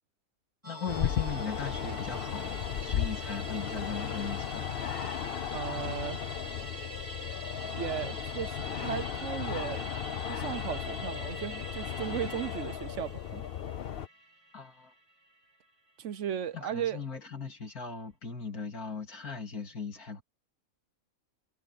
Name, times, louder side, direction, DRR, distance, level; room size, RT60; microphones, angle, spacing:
voice 1, 0.6-4.7 14.5-14.9 16.5-20.2, left 5 dB, 85° left, 3.5 m, -38 dB
Musical instrument, 0.6-15.3 15.6-15.7, right 1 dB, 20° right, 2.2 m, -44 dB
sound 1, 0.9-14.1, left 9 dB, 55° left, 0.7 m, -35 dB
voice 2, 5.5-6.2 7.6-9.9 10.3-13.4 16.0-17.0, right 9 dB, 60° right, 1.0 m, -36 dB
omnidirectional pair, 1.5 m